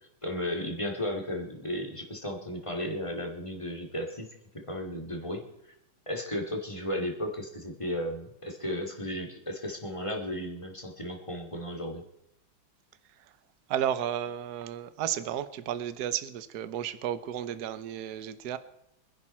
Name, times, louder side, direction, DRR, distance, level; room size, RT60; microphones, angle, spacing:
voice 1, 0.2-4.3 4.5-5.5 6.1-12.0, left 1 dB, 15° left, 2.4 m, -34 dB
voice 2, 13.7-18.6, right 10 dB, 60° right, 1.3 m, -33 dB
25.0 x 11.0 x 4.4 m
omnidirectional pair, 2.2 m